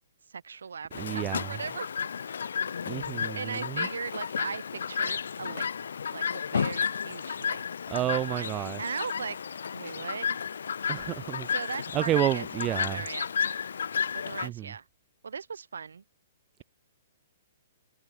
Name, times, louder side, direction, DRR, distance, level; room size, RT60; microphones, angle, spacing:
voice 1, 0.3-1.9 3.3-5.7 6.1-7.6 7.9-9.4 9.7-10.4 11.5-13.6 14.1-14.9 15.2-16.0, right 6 dB, 65° right, 4.8 m, -38 dB
Chirp tweet, 0.9-14.5, left 7 dB, 65° left, 2.7 m, -32 dB
voice 2, 1.0-1.5 2.9-3.9 7.9-8.8 10.9-11.5 11.9-13.0 14.4-14.7, right 14 dB, 25° right, 2.5 m, -30 dB
figure-of-eight pair, 120°, 0 cm